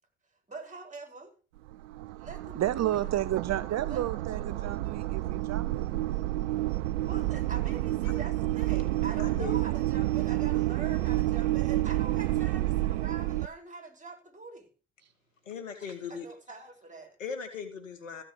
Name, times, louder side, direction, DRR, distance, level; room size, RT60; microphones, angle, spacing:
voice 1, 0.5-1.3 2.2-3.1 3.7-5.1 7.0-14.7 16.1-17.2, right 3 dB, 20° right, 4.8 m, -44 dB
sound 1, 1.6-13.5, right 16 dB, 85° right, 0.5 m, -29 dB
voice 2, 2.5-5.9, right 13 dB, 45° right, 0.7 m, -31 dB
voice 3, 9.2-9.5 15.5-16.3 17.2-18.2, left 6 dB, 90° left, 2.1 m, -38 dB
14.5 x 6.8 x 7.0 m
hypercardioid pair, 55°, 37 cm